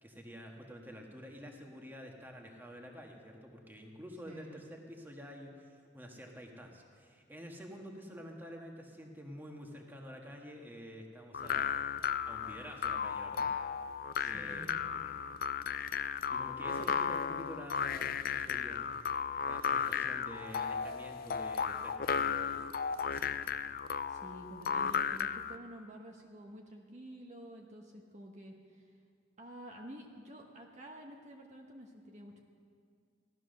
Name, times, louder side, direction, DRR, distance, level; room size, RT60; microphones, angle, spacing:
voice 1, 0.0-11.7 12.2-13.5 14.2-15.2 16.3-18.9 19.5-22.6 23.0-23.8, equal, 10° right, 1 dB, 1.5 m, -49 dB
voice 2, 4.2-4.7 14.2-15.0 24.1-29.0 29.4-32.4, right 1 dB, 40° right, 1 dB, 1.1 m, -50 dB
sound 1, 11.3-25.6, left 7 dB, 50° left, 0.4 m, -35 dB
16.0 x 12.5 x 6.5 m, 2.2 s
head